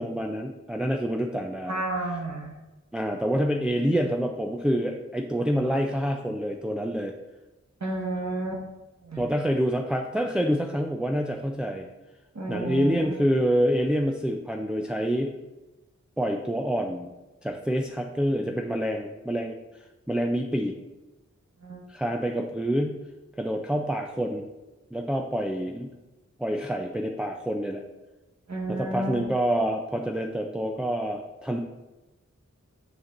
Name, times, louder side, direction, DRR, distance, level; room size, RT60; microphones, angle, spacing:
voice 1, 0.0-1.8 2.9-7.2 9.2-11.9 12.5-15.3 16.2-17.1 17.4-19.6 20.1-20.8 21.9-22.9 23.4-24.4 24.9-25.9 26.4-27.8 28.7-31.6, equal, 5° right, 2 dB, 0.4 m, -27 dB
voice 2, 1.7-2.5 7.8-8.6 9.0-9.3 12.3-13.1 21.6-21.8 28.5-29.2, right 2 dB, 65° right, 0 dB, 1.3 m, -31 dB
6.8 x 5.9 x 2.6 m, 1.1 s
wide cardioid pair, 50°, 29 cm